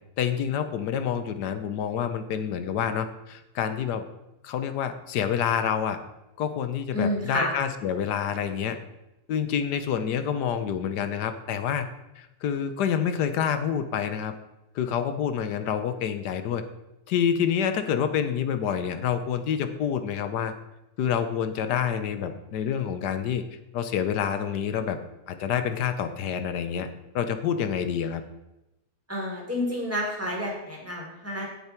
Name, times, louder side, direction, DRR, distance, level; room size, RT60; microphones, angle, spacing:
voice 1, 0.2-4.0 4.4-6.0 6.4-8.8 9.3-11.9 12.2-14.3 14.7-16.6 17.1-20.5 21.0-23.5 23.7-25.0 25.3-26.9 27.1-28.2, left 8 dB, 90° left, 9 dB, 1.4 m, -27 dB
voice 2, 6.9-7.5 29.1-31.4, left 1 dB, 10° right, -3 dB, 3.7 m, -29 dB
17.5 x 7.0 x 4.5 m, 0.94 s
omnidirectional pair, 1.7 m